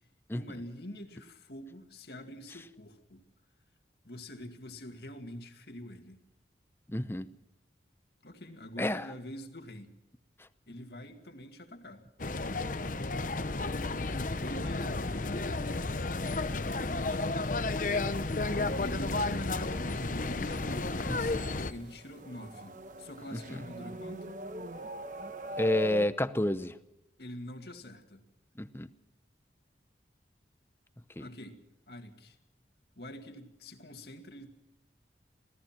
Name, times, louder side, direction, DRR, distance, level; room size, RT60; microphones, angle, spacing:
voice 1, 0.3-3.2 4.0-6.2 8.2-9.9 10.7-12.0 14.4-15.0 16.3-17.4 18.8-24.4 27.2-28.2 31.2-31.6 31.9-32.4 33.0-34.5, equal, 60° left, 6 dB, 2.2 m, -45 dB
voice 2, 6.9-7.3 8.8-9.1 21.1-21.2 23.3-23.4 25.6-26.8 28.6-28.9 31.2-31.3, left 1 dB, 15° left, 13 dB, 0.7 m, -29 dB
sound 1, 12.2-21.7, left 2 dB, 45° left, 0.8 m, -32 dB
sound 2, 18.4-26.1, equal, 45° right, 1.2 m, -43 dB
27.0 x 17.5 x 5.9 m, 0.93 s
head